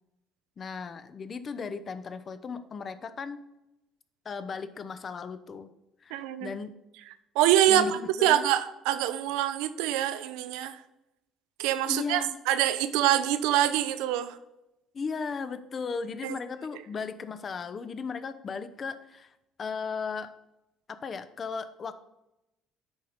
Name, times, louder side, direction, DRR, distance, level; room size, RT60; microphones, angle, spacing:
voice 1, 0.6-3.4 4.2-5.7 6.0-6.7 7.7-8.4 11.9-12.3 14.9-19.3 19.6-20.3 20.9-21.9, left 5 dB, 40° left, 12 dB, 0.6 m, -36 dB
voice 2, 6.1-6.5 7.4-7.9 8.2-10.8 11.6-14.4 16.2-16.3, right 12 dB, 70° right, 12 dB, 0.5 m, -25 dB
9.7 x 4.2 x 4.1 m, 0.90 s
figure-of-eight pair, 55°, 0 cm